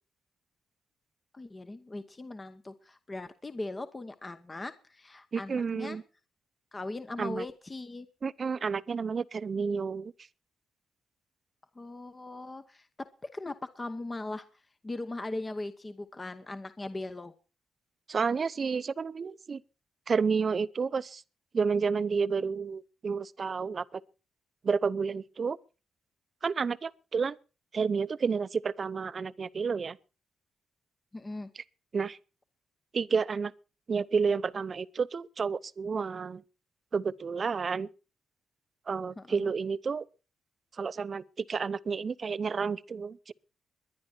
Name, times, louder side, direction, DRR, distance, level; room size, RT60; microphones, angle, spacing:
voice 1, 1.3-6.0 6.7-8.1 11.8-13.1 13.3-14.5 14.8-17.3 31.1-31.5 39.2-39.5, left 2 dB, 20° left, 0.9 m, -39 dB
voice 2, 5.3-6.0 7.2-7.4 8.2-10.1 18.1-19.6 20.1-21.2 21.5-24.0 24.6-25.6 26.4-27.4 27.7-30.0 31.6-31.7 31.9-32.2 32.9-33.5 33.9-36.4 36.9-37.9 38.9-40.1 40.8-43.3, right 5 dB, 40° right, 0.7 m, -30 dB
22.0 x 10.0 x 4.4 m
cardioid pair, 110°, 0 cm